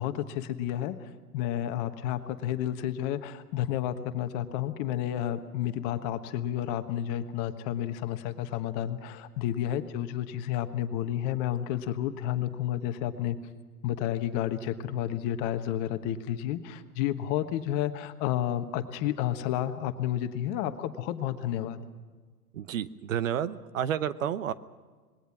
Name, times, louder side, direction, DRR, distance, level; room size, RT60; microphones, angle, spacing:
voice 1, 0.0-13.4 13.8-21.8, left 11 dB, 35° left, 10 dB, 1.3 m, -31 dB
voice 2, 22.5-24.5, right 9 dB, 55° right, 15 dB, 1.0 m, -30 dB
26.0 x 21.0 x 6.1 m, 1.4 s
figure-of-eight pair, 105°, 46 cm